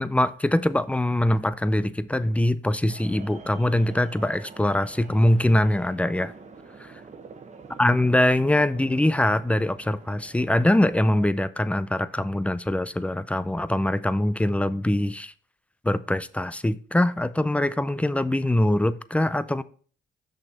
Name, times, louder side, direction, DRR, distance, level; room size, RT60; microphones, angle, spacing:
voice 1, 0.0-6.3 6.8-6.9 7.8-15.3 15.8-19.6, left 1 dB, 5° left, 0.4 m, -23 dB
sound 1, 2.9-11.3, right 4 dB, 35° right, 1.1 m, -46 dB
6.4 x 6.3 x 4.3 m
cardioid pair, 90°, 20 cm